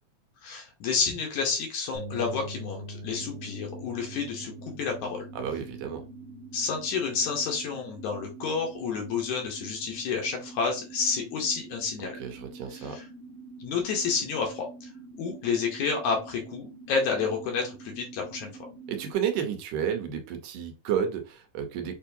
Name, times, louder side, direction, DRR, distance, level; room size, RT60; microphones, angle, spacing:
voice 1, 0.4-4.5 4.8-5.2 6.5-12.2 12.7-13.0 13.6-14.9 15.2-18.5, left 5 dB, 70° left, 2.2 m, -30 dB
sound 1, 1.9-9.7, equal, 40° left, 1.3 m, -45 dB
sound 2, 3.1-19.1, right 3 dB, 25° right, 1.2 m, -46 dB
voice 2, 5.4-6.0 12.2-13.0 18.9-22.0, right 8 dB, 80° right, 2.4 m, -31 dB
6.8 x 2.7 x 2.7 m
omnidirectional pair, 3.7 m